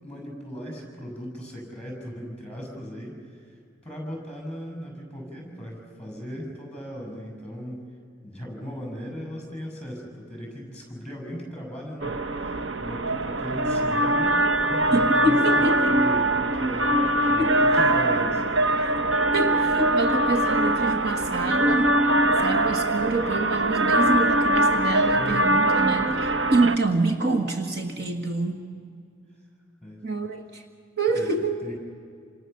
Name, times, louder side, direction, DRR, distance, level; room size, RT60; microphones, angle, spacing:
voice 1, 0.0-3.4 3.8-7.8 8.2-17.4 17.7-18.6 25.1-25.6 26.1-26.3 29.8-30.1 31.1-31.3 31.6-31.7, equal, 5° left, 0 dB, 6.8 m, -38 dB
sound 1, 12.0-26.8, right 1 dB, 85° right, 1.0 m, -22 dB
voice 2, 14.9-16.0 17.4-17.6 18.7-18.9 19.3-22.0 22.4-26.1 26.5-28.6 30.0-30.6 31.0-31.6, right 2 dB, 60° right, 4 dB, 1.7 m, -26 dB
28.5 x 26.5 x 6.9 m, 2.2 s
head